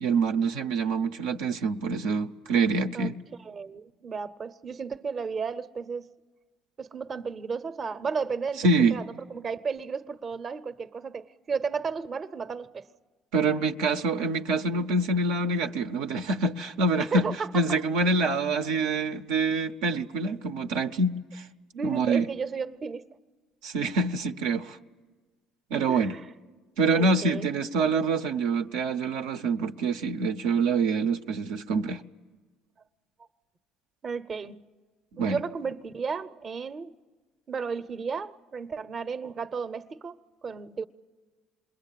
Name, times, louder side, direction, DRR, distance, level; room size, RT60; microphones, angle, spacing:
voice 1, 0.0-3.2 8.6-9.0 13.3-21.4 21.8-22.3 23.6-24.8 25.7-26.2 26.8-32.0 35.2-35.4, right 3 dB, 80° right, 0.8 m, -26 dB
voice 2, 3.4-6.1 6.8-12.9 17.0-17.8 21.7-23.1 25.9-26.3 26.9-27.5 34.0-34.6 35.2-36.9 37.5-40.8, right 5 dB, 40° right, 0.8 m, -33 dB
27.5 x 21.5 x 9.1 m
supercardioid pair, 85°, 0 cm